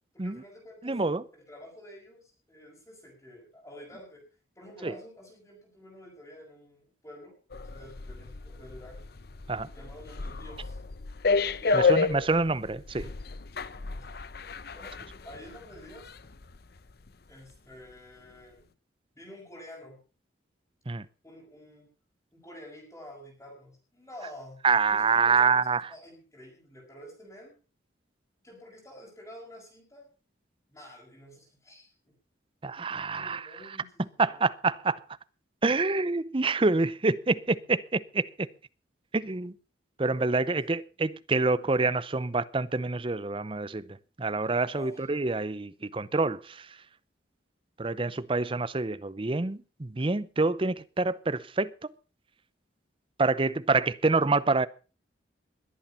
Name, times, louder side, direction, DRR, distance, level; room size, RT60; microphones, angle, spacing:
voice 1, 0.1-1.0 1.3-4.2 4.6-9.1 9.7-10.8 11.6-12.4 13.9-14.2 14.7-15.0 15.2-16.1 17.3-18.7 19.1-20.0 21.2-21.9 22.3-24.6 24.9-27.5 28.4-30.1 30.7-32.1 33.1-34.5 40.6-40.7 44.7-45.1, left 1 dB, 15° left, 5.8 m, -49 dB
voice 2, 0.8-1.2 4.8-4.9 9.5-9.7 11.7-13.1 20.9-21.0 24.6-25.8 32.6-33.4 34.2-35.0 35.6-38.5 39.1-39.5 40.0-43.8 44.2-46.6 47.8-51.7 53.2-54.7, right 3 dB, 30° right, 0.6 m, -27 dB
sound 1, 7.5-16.6 16.9-17.1, left 4 dB, 55° left, 0.7 m, -31 dB
21.0 x 8.9 x 5.5 m
head